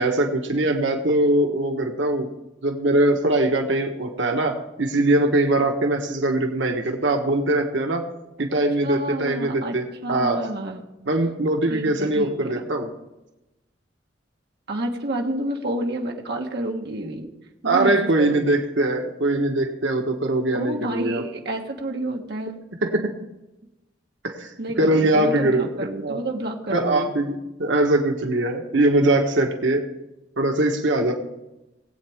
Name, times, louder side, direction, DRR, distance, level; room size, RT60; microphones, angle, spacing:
voice 1, 0.0-2.3 2.6-8.0 8.4-10.5 11.1-12.9 17.6-21.2 22.8-23.1 24.2-24.5 24.8-25.7 26.0-26.2 26.7-29.8 30.4-31.1, right 1 dB, 85° right, 3 dB, 1.3 m, -22 dB
voice 2, 8.8-9.7 10.0-10.9 11.7-12.7 14.7-17.3 17.6-18.4 20.5-22.6 24.6-27.1, right 1 dB, 60° right, 1 dB, 1.4 m, -29 dB
19.5 x 8.4 x 3.5 m, 0.96 s
head